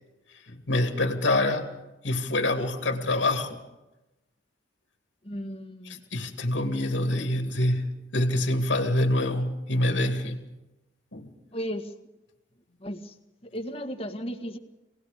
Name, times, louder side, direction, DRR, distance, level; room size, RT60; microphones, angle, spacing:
voice 1, 0.5-1.8 2.0-3.6 6.1-10.4 11.1-11.3, left 1 dB, 80° left, 4 dB, 2.3 m, -26 dB
voice 2, 5.2-6.0 11.5-11.9 12.8-13.2 13.4-14.6, equal, 30° left, 5 dB, 1.8 m, -35 dB
27.0 x 19.0 x 5.1 m, 1.0 s
head